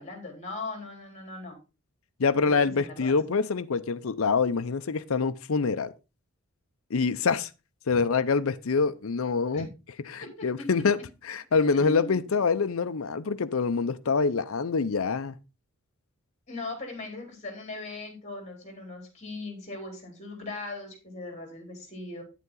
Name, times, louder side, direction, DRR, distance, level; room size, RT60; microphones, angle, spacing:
voice 1, 0.0-1.6 2.4-3.1 7.9-8.0 9.5-9.7 10.2-10.7 11.5-12.2 16.5-22.2, left 2 dB, 30° left, 3.9 m, -39 dB
voice 2, 2.2-5.9 6.9-7.5 7.9-9.7 10.0-11.0 11.2-15.3, left 4 dB, 70° left, 0.6 m, -25 dB
9.3 x 8.2 x 3.8 m
head